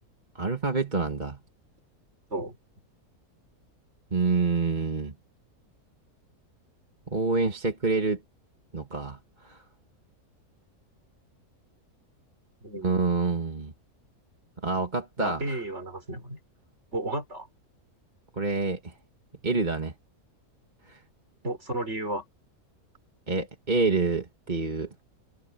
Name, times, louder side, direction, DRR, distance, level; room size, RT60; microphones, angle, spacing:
voice 1, 0.3-1.4 4.1-5.2 7.1-8.2 8.7-9.6 12.8-13.7 14.6-15.6 18.3-18.9 19.4-19.9 20.9-21.0 23.3-24.9, right 3 dB, 30° right, 2.2 m, -27 dB
voice 2, 12.6-13.0 15.2-16.4 16.9-17.5 21.4-22.2, right 1 dB, 45° right, 6.2 m, -33 dB
omnidirectional pair, 1.6 m